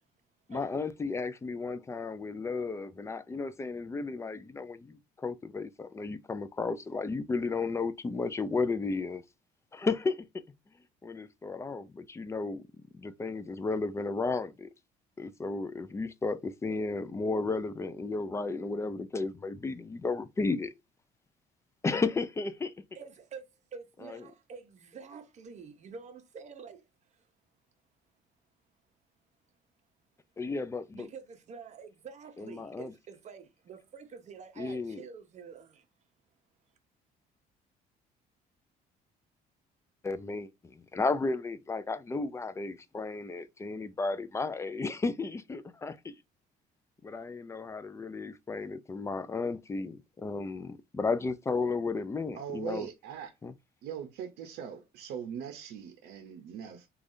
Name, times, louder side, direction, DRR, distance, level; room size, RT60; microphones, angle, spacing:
voice 1, 0.5-9.2 9.7-10.2 11.0-12.6 12.9-14.7 15.2-20.7 21.8-22.7 24.0-24.2 30.4-31.1 32.4-32.9 34.6-35.0 40.0-46.1 47.0-52.9 53.4-53.5, left 3 dB, 15° left, 0.3 m, -33 dB
voice 2, 22.9-26.8 27.1-27.2 30.9-35.9, right 5 dB, 45° right, 0.7 m, -48 dB
voice 3, 52.4-53.3 53.8-56.9, right 8 dB, 80° right, 0.6 m, -40 dB
3.3 x 2.3 x 2.6 m
cardioid pair, 110°, 17 cm